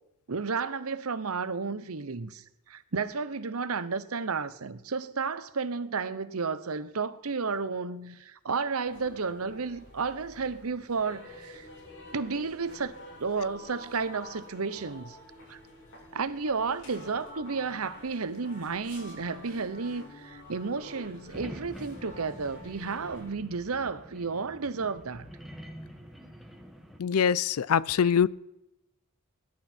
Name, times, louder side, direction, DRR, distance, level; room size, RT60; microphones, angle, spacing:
voice 1, 0.3-11.7 12.1-15.2 15.5-15.6 16.1-25.3, right 4 dB, 90° right, 0.9 m, -32 dB
sound 1, 8.8-23.3, left 1 dB, 60° left, 4.7 m, -49 dB
sound 2, 21.3-27.0, equal, ahead, 1.5 m, -46 dB
voice 2, 27.0-28.3, left 7 dB, 90° left, 0.5 m, -23 dB
20.0 x 11.5 x 4.5 m
head